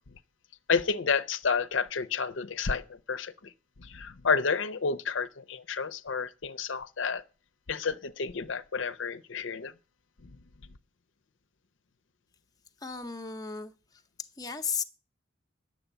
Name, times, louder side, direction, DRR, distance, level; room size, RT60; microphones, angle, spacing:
voice 1, 0.7-3.5 3.8-7.2 7.7-9.7 10.2-10.4, left 5 dB, 75° left, 0.6 m, -30 dB
voice 2, 12.8-14.8, left 6 dB, 20° left, 0.7 m, -35 dB
10.0 x 7.5 x 8.0 m
head